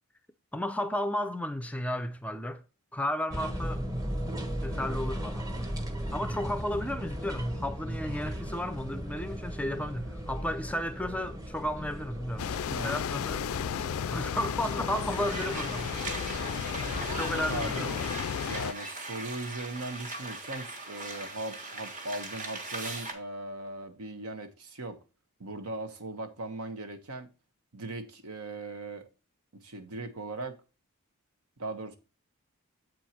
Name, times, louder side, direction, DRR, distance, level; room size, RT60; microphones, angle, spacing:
voice 1, 0.5-2.6 2.9-3.8 4.6-5.5 6.1-12.5 12.8-13.5 14.0-15.9 17.1-17.9, left 1 dB, 5° left, 0.4 m, -33 dB
sound 1, 3.3-18.2, equal, 15° right, 1.0 m, -37 dB
sound 2, 12.4-18.7, left 8 dB, 70° left, 0.3 m, -34 dB
sound 3, 15.1-23.1, right 2 dB, 35° right, 1.5 m, -39 dB
voice 2, 17.5-18.0 18.4-25.0 25.4-27.3 27.7-29.1 29.5-30.6 31.6-32.0, right 2 dB, 80° right, 1.2 m, -39 dB
7.8 x 4.5 x 4.5 m
head